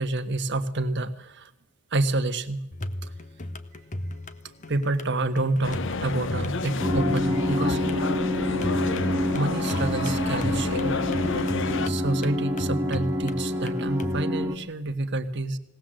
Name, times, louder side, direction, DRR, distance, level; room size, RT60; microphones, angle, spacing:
voice 1, 0.0-1.5 1.9-2.6 3.0-3.1 4.7-7.8 9.3-11.0 11.4-11.5 11.8-15.6, right 2 dB, 60° right, 9 dB, 1.4 m, -28 dB
sound 1, 2.7-14.2, left 1 dB, 40° left, 1.3 m, -36 dB
sound 2, 5.6-11.9, left 4 dB, 65° left, 0.8 m, -30 dB
sound 3, 6.8-14.6, left 1 dB, 15° right, 1.9 m, -27 dB
21.5 x 18.0 x 7.7 m, 0.79 s
head